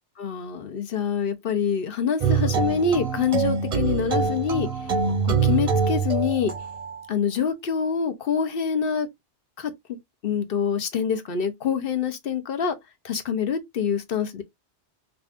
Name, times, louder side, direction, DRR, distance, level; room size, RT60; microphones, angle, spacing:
voice 1, 0.2-4.7 5.2-6.5 7.1-9.1 9.6-9.7 10.2-12.8 13.0-14.4, left 6 dB, 60° left, 0.8 m, -25 dB
sound 1, 2.2-7.1, right 5 dB, 40° right, 0.7 m, -24 dB
4.8 x 2.4 x 2.4 m
omnidirectional pair, 1.2 m